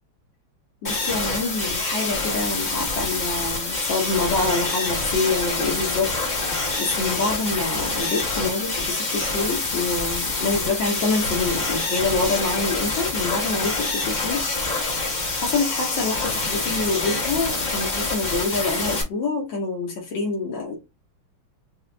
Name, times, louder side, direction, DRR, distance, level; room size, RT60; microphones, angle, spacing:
voice 1, 0.8-14.4 15.4-20.8, left 3 dB, 60° left, 1.9 m, -26 dB
sound 1, 0.8-19.0, left 3 dB, 40° left, 0.6 m, -26 dB
5.5 x 2.5 x 2.3 m
omnidirectional pair, 2.4 m